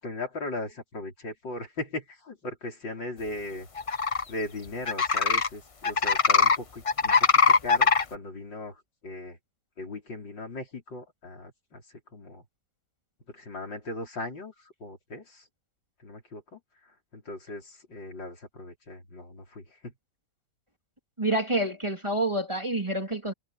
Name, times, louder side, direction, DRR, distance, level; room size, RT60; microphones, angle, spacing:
voice 1, 0.0-3.7 4.3-7.1 7.6-9.4 9.8-11.8 12.1-12.4 13.3-15.4 16.0-16.6 17.1-19.9, left 2 dB, 80° left, 5.7 m, -38 dB
sound 1, 3.8-4.2 4.9-5.5 5.8-6.6 6.9-8.0, left 5 dB, 60° left, 0.3 m, -21 dB
voice 2, 21.2-23.3, right 1 dB, 15° right, 2.8 m, -28 dB
omnidirectional pair, 2.0 m